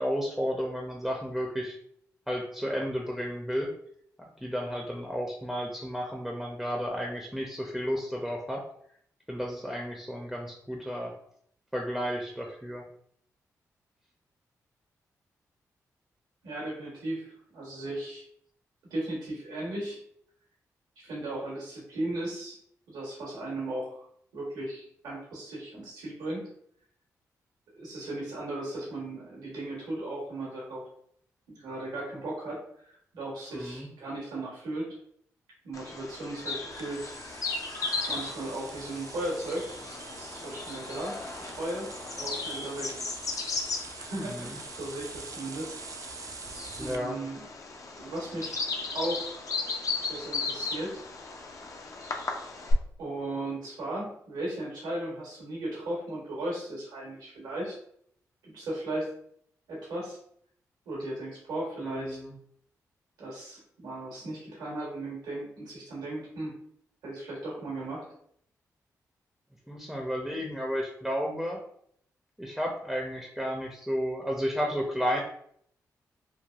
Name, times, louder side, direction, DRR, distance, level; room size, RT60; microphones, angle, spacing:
voice 1, 0.0-1.8 2.3-3.7 4.4-8.6 9.3-11.1 11.7-12.8 33.5-33.9 44.2-44.6 46.8-47.2 61.8-62.3 69.7-71.6 72.4-75.2, equal, ahead, 0 dB, 0.6 m, -32 dB
voice 2, 16.4-18.2 18.9-20.0 21.0-22.6 22.9-24.0 24.3-26.5 27.8-30.8 31.5-35.0 35.6-37.1 38.1-39.7 40.1-42.9 44.1-45.7 46.8-47.4 48.0-48.6 48.9-49.4 50.0-51.0 53.0-57.7 58.4-59.1 59.7-60.2 60.8-62.2 63.2-66.5 67.0-68.0, right 1 dB, 90° right, -4 dB, 1.2 m, -36 dB
Bird vocalization bird call bird song, 35.7-52.7, left 3 dB, 55° left, 0.6 m, -36 dB
sound 1, 36.7-47.0, right 5 dB, 55° right, 0.3 m, -45 dB
3.2 x 2.1 x 2.4 m, 0.66 s
supercardioid pair, 50°, 7 cm